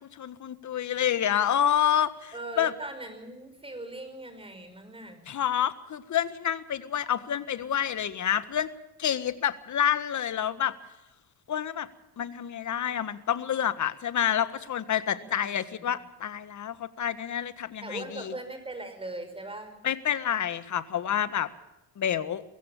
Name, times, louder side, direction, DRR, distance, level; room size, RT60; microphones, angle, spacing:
voice 1, 0.0-2.7 5.3-8.7 9.0-10.7 11.5-11.9 12.2-18.3 19.8-21.5 22.0-22.4, left 9 dB, 45° left, 13 dB, 1.6 m, -28 dB
voice 2, 2.3-5.2 15.1-15.9 17.8-19.8, right 2 dB, 15° right, 7 dB, 5.4 m, -40 dB
23.0 x 16.0 x 7.2 m, 0.95 s
cardioid pair, 100°, 40 cm